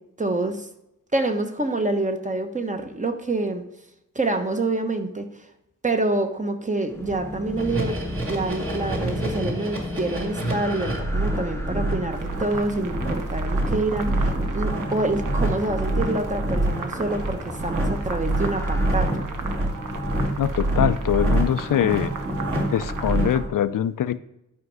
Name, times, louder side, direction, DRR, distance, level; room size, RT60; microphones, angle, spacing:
voice 1, 0.2-0.7 1.1-3.6 4.1-5.2 5.8-8.0 8.3-19.3, right 2 dB, 25° right, 6 dB, 1.2 m, -27 dB
sound 1, 6.9-12.9 14.9-18.9, left 2 dB, 10° left, 1.0 m, -35 dB
sound 2, 7.6-23.5, right 1 dB, 40° right, 2.4 m, -26 dB
sound 3, 12.1-23.4, right 4 dB, 75° right, 1.2 m, -38 dB
voice 2, 20.4-22.1 22.7-24.2, left 10 dB, 80° left, 14 dB, 0.6 m, -23 dB
12.0 x 5.3 x 4.8 m, 0.84 s
wide cardioid pair, 105°, 32 cm